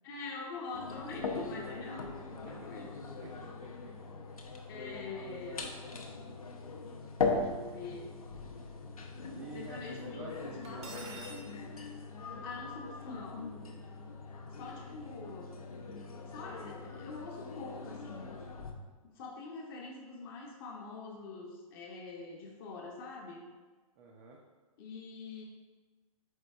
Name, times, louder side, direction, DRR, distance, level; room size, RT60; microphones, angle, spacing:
voice 1, 0.0-2.9 4.7-5.8 7.2-8.1 9.5-11.4 12.2-13.5 14.5-15.5 16.3-18.4 19.1-23.5 24.8-25.4, left 3 dB, 40° left, -1 dB, 0.7 m, -45 dB
sound 1, 0.7-18.7, left 4 dB, 75° left, 0.6 m, -40 dB
voice 2, 3.2-4.1 9.4-11.1 14.7-14.8 15.1-15.2 24.0-24.4, right 3 dB, 30° right, -1 dB, 0.4 m, -49 dB
Cutlery silverware, 10.6-11.4, right 3 dB, 50° right, 0.8 m, -46 dB
4.5 x 4.0 x 2.3 m, 1.3 s
figure-of-eight pair, 115°, 19 cm